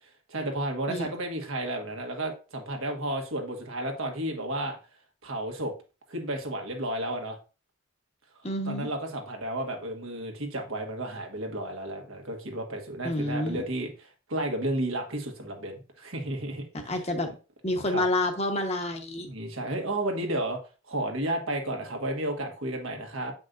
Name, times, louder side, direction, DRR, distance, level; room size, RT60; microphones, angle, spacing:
voice 1, 0.3-4.8 5.2-5.7 6.1-7.4 8.6-17.0 17.9-18.0 19.2-20.6 20.9-23.3, right 1 dB, 80° right, 3 dB, 1.5 m, -32 dB
voice 2, 8.4-8.9 13.0-13.6 16.8-17.3 17.6-19.3, left 1 dB, 30° left, 5 dB, 1.1 m, -28 dB
8.0 x 5.3 x 2.6 m, 0.33 s
head